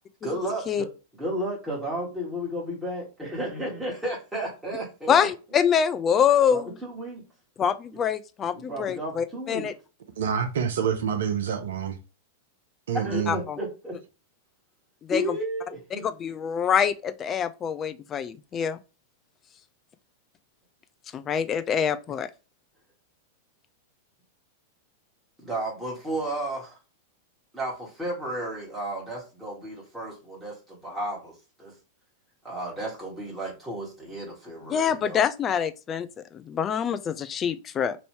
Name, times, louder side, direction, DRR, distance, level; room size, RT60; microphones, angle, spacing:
voice 1, 0.2-0.9 1.2-5.3 6.5-7.2 8.5-9.7 12.9-14.0 15.1-16.3 25.4-26.8 27.5-31.7 32.4-35.2, right 1 dB, 5° right, 1.5 m, -33 dB
voice 2, 5.1-6.7 7.6-9.7 13.1-13.6 15.0-15.4 15.9-18.8 21.1-22.3 34.7-36.1 36.3-38.0, left 8 dB, 30° left, 0.4 m, -25 dB
voice 3, 10.2-12.0 12.9-13.4, right 7 dB, 65° right, 0.6 m, -27 dB
3.0 x 2.6 x 3.2 m
figure-of-eight pair, 95°, 0 cm